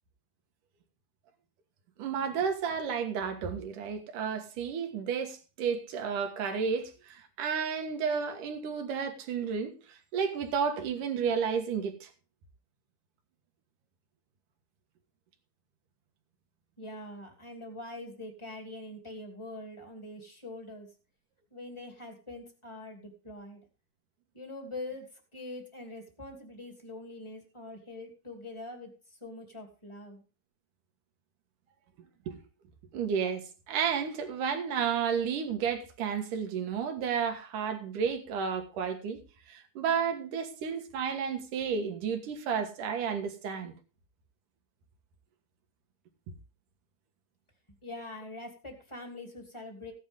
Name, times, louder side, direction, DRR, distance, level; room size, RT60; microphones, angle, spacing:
voice 1, 2.0-9.7 10.1-12.1 32.3-32.4 32.9-39.2 39.5-43.7, right 6 dB, 65° right, 2.9 m, -32 dB
voice 2, 16.8-20.9 21.5-23.6 24.3-30.2 47.8-49.9, left 2 dB, 10° left, 2.2 m, -44 dB
16.0 x 9.9 x 3.6 m
omnidirectional pair, 4.3 m